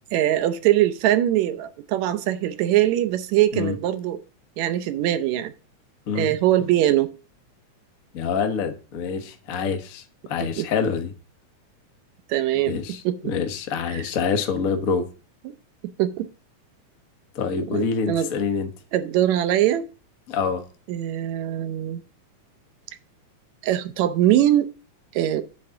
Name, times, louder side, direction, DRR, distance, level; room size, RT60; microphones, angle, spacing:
voice 1, 0.1-4.2 4.6-5.5 6.1-7.1 10.6-10.7 12.3-12.8 13.0-13.3 13.9-14.0 15.5-15.6 16.0-16.3 17.7-18.3 18.9-19.9 20.9-22.0 23.6-24.7 25.1-25.4, right 12 dB, 75° right, 2.0 m, -22 dB
voice 2, 8.1-11.1 12.7-15.1 17.3-18.7 20.3-20.6, left 6 dB, 80° left, 0.7 m, -26 dB
8.7 x 3.8 x 6.9 m
omnidirectional pair, 3.3 m